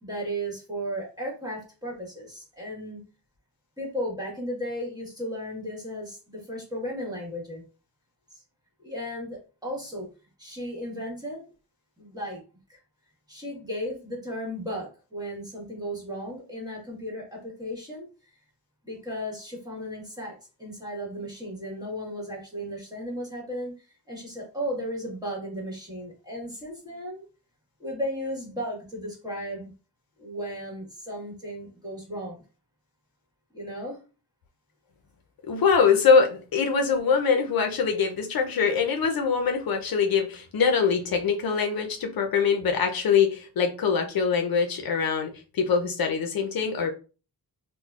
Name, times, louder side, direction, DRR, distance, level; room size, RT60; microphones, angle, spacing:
voice 1, 0.0-3.0 3.8-7.6 8.3-8.4 8.8-10.1 10.4-11.4 12.0-12.4 12.7-12.8 13.3-18.0 18.8-27.3 27.8-29.7 30.2-32.4 33.5-34.0, equal, 10° right, 1.3 m, -35 dB
voice 2, 35.5-46.9, left 6 dB, 65° left, 0.6 m, -23 dB
3.7 x 2.1 x 2.3 m
wide cardioid pair, 95°, 38 cm